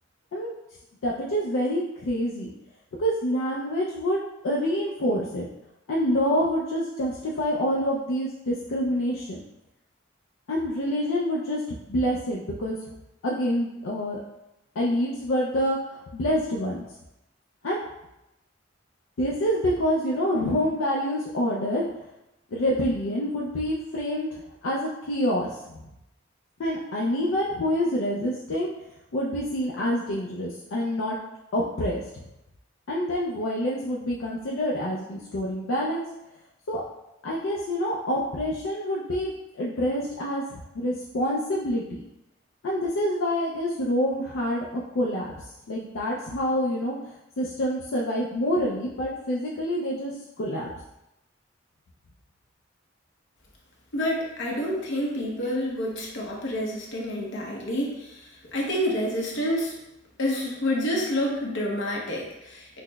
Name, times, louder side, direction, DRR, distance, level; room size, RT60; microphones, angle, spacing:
voice 1, 1.0-2.5 3.0-5.5 5.9-9.4 10.5-11.6 11.9-12.8 13.2-14.2 14.8-16.8 17.6-17.9 19.2-22.0 22.5-25.9 26.6-28.7 29.1-31.2 31.5-32.2 32.9-36.0 36.7-36.8 37.2-42.0 42.6-47.0 47.4-50.7, equal, 85° left, -4 dB, 0.4 m, -27 dB
voice 2, 53.9-59.7 60.2-62.8, left 1 dB, 70° left, -2 dB, 0.8 m, -28 dB
5.7 x 2.1 x 2.2 m, 0.92 s
head